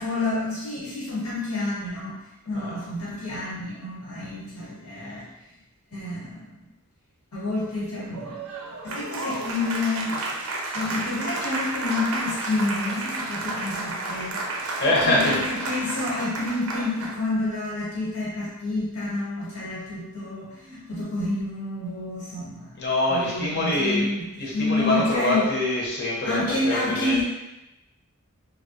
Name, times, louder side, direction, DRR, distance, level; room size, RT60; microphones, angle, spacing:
voice 1, 0.0-2.2 2.5-5.2 5.9-6.5 7.3-8.4 8.8-10.3 10.7-14.4 15.0-22.7 23.1-25.4 26.2-27.2, left 2 dB, 80° left, -6 dB, 1.2 m, -29 dB
Applause, 8.1-17.3, right 2 dB, 70° right, 0.4 m, -31 dB
voice 2, 14.8-15.4 22.8-24.1 24.4-26.4 26.6-27.2, left 2 dB, 50° left, -5 dB, 0.8 m, -24 dB
3.3 x 2.3 x 2.5 m, 0.95 s
head